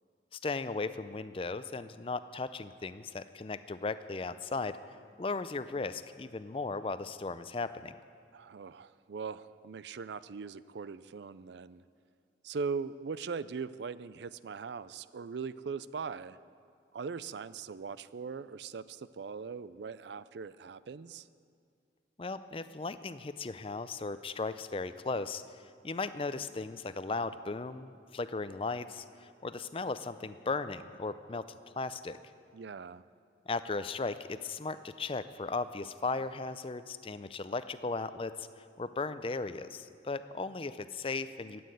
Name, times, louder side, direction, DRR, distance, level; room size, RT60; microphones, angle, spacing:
voice 1, 0.3-4.8 5.2-7.9 22.2-25.4 25.8-31.5 31.8-32.2 33.5-41.7, left 3 dB, 30° left, 13 dB, 0.4 m, -36 dB
voice 2, 8.3-11.8 12.4-16.4 16.9-21.3 32.5-33.0, right 5 dB, 70° right, 16 dB, 0.4 m, -40 dB
13.5 x 8.6 x 9.1 m, 2.3 s
head